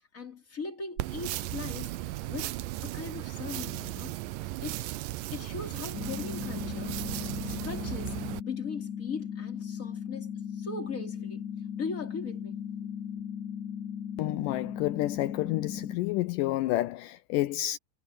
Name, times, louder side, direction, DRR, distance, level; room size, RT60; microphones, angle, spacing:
voice 1, 0.1-4.8 5.3-7.2 7.4-11.5 11.8-12.7, left 4 dB, 25° left, 3.6 m, -40 dB
sound 1, 1.0-8.4, right 17 dB, 85° right, 2.3 m, -36 dB
sound 2, 5.9-15.9, left 8 dB, 40° left, 1.7 m, -37 dB
voice 2, 14.2-17.8, left 16 dB, 80° left, 2.2 m, -29 dB
omnidirectional pair, 3.9 m